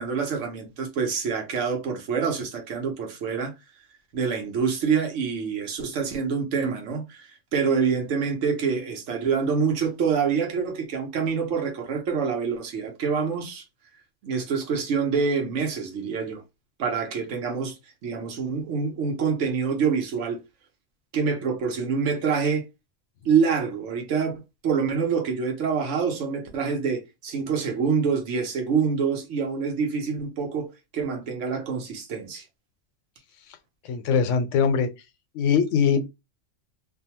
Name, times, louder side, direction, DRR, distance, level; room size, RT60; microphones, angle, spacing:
voice 1, 0.0-3.5 4.1-13.6 14.2-16.4 16.8-17.8 18.0-20.4 21.1-22.6 23.2-24.3 24.6-32.4, right 6 dB, 80° right, 1.1 m, -26 dB
voice 2, 33.8-34.9 35.3-36.0, left 6 dB, 85° left, 0.9 m, -21 dB
2.6 x 2.2 x 2.8 m
omnidirectional pair, 1.3 m